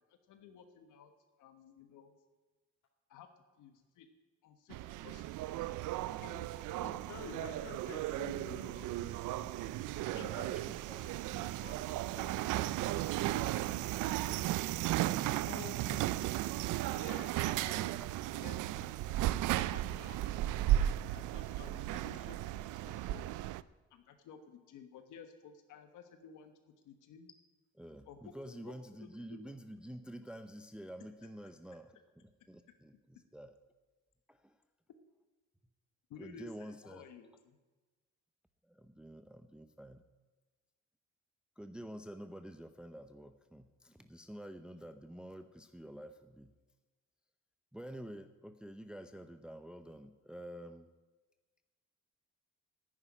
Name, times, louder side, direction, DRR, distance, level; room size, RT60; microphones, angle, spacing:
voice 1, 0.1-1.1 1.4-2.2 3.1-3.3 3.6-4.1 4.4-5.2 5.6-5.7 6.2-6.5 10.1-11.8 16.9-17.8 18.3-19.0 19.6-20.4 20.7-22.4 22.8-23.3 23.9-27.3 28.1-28.7 29.3-29.5 36.1-37.6, left 6 dB, 85° left, 7 dB, 1.3 m, -54 dB
sound 1, 4.7-23.6, right 14 dB, 85° right, 0.5 m, -35 dB
voice 2, 6.8-9.8 15.4-17.2, left 5 dB, 65° left, 0 dB, 2.1 m, -50 dB
voice 3, 10.1-11.1 18.0-18.4 20.3-20.5 21.9-22.3 27.8-33.6 34.3-34.6 36.2-37.0 38.6-40.0 41.6-46.5 47.7-50.9, equal, 5° right, 8 dB, 0.6 m, -49 dB
10.0 x 9.8 x 10.0 m, 1.3 s
cardioid pair, 90°, 30 cm